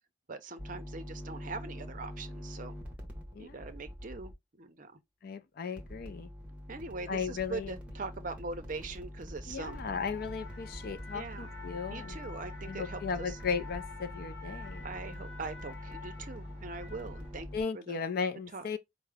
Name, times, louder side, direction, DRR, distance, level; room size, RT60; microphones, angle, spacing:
voice 1, 0.3-2.7 3.4-4.9 6.7-9.8 11.1-11.5 11.9-13.4 14.8-17.5 17.7-18.0 18.5-18.6, right 3 dB, 40° right, 0.5 m, -42 dB
sound 1, 0.6-4.3 5.8-17.6, equal, 5° right, 0.9 m, -45 dB
voice 2, 5.2-6.3 7.1-7.7 9.5-12.2 12.6-14.8 17.5-18.8, left 5 dB, 50° left, 0.4 m, -36 dB
sound 2, 9.6-17.3, left 3 dB, 35° left, 2.0 m, -48 dB
4.6 x 2.0 x 3.3 m
head